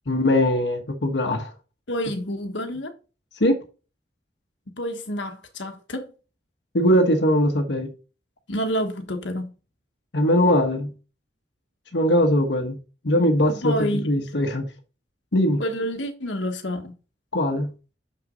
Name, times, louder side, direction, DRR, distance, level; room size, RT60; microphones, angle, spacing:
voice 1, 0.1-1.5 3.4-3.6 6.7-7.9 10.1-10.9 11.9-12.8 13.0-14.7 15.3-15.6 17.3-17.7, equal, 65° left, 1.2 m, -21 dB
voice 2, 1.9-2.9 4.8-6.1 8.5-9.5 13.5-14.1 15.6-16.9, equal, 85° left, 1.4 m, -28 dB
6.8 x 6.0 x 3.8 m
head